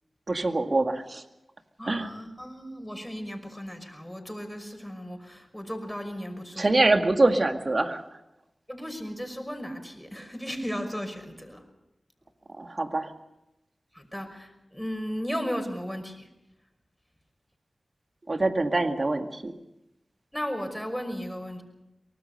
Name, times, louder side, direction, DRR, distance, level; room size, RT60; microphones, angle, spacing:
voice 1, 0.3-1.2 1.8-2.1 6.6-8.0 12.6-13.1 18.3-19.5, right 2 dB, 50° right, 6 dB, 2.1 m, -24 dB
voice 2, 1.8-6.7 8.7-11.6 13.9-16.3 20.3-21.6, equal, 5° left, 6 dB, 5.7 m, -35 dB
24.0 x 19.5 x 6.8 m, 0.91 s
cardioid pair, 40°, 0 cm